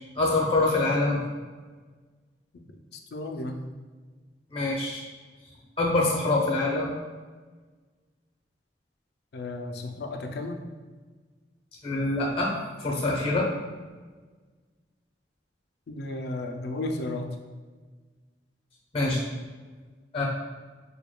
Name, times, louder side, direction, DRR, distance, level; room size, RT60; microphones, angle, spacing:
voice 1, 0.1-1.2 4.5-5.0 5.8-6.9 11.8-12.5 12.8-13.5 18.9-19.2 20.1-20.2, left 2 dB, 30° left, -2 dB, 0.8 m, -25 dB
voice 2, 2.9-3.6 9.3-10.6 15.9-17.4, left 2 dB, 60° left, 5 dB, 0.4 m, -33 dB
6.6 x 2.2 x 2.2 m, 1.4 s
head